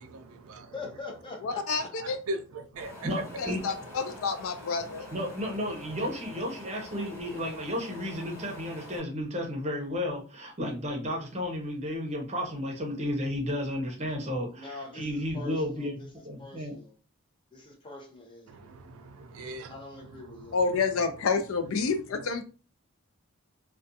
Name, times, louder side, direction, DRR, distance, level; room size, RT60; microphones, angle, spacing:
voice 1, 0.7-2.2 14.5-16.1 16.4-17.0 17.5-18.7 19.7-20.6, left 3 dB, 20° left, 0.6 m, -44 dB
voice 2, 1.4-2.2 3.4-5.1 20.5-22.4, left 4 dB, 65° left, 0.4 m, -29 dB
voice 3, 2.0-3.2 4.9-5.1 18.5-19.8 20.3-20.6 21.8-21.9, right 1 dB, 70° right, 0.4 m, -39 dB
Wind, 2.8-9.0, left 1 dB, 45° left, 1.2 m, -46 dB
voice 4, 3.0-3.6 5.1-16.8, left 1 dB, 30° right, 0.7 m, -33 dB
2.4 x 2.3 x 2.6 m
head